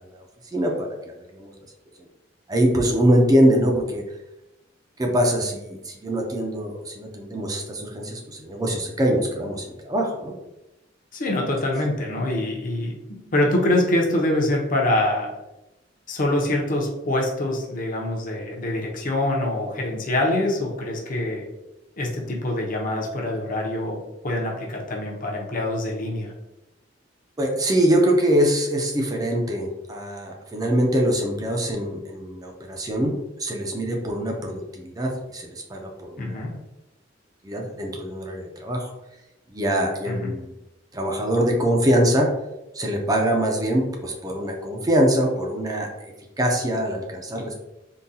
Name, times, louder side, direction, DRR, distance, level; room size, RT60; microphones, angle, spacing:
voice 1, 0.5-1.0 1.3-1.5 2.5-4.0 5.0-10.3 27.4-36.5 37.4-38.9 39.5-40.5 40.9-42.3 42.7-46.1 46.4-47.5, equal, 20° right, 1 dB, 0.5 m, -23 dB
voice 2, 11.1-13.0 13.3-15.3 16.1-21.5 22.0-26.3 36.2-36.6 40.0-40.3, left 1 dB, 45° left, -1 dB, 0.7 m, -25 dB
3.8 x 2.2 x 2.7 m, 0.95 s
head